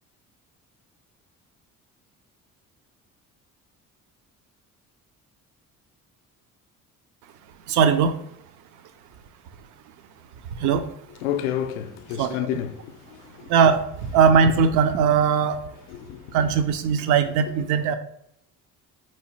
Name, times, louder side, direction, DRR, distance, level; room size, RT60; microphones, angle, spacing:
voice 1, 7.7-8.1 10.6-10.9 12.2-12.5 13.5-15.6 16.3-18.0, right 6 dB, 45° right, 0.4 m, -20 dB
voice 2, 11.2-13.5 15.9-16.2, left 10 dB, 65° left, 0.5 m, -30 dB
4.0 x 3.1 x 2.8 m
figure-of-eight pair, 50°, 45 cm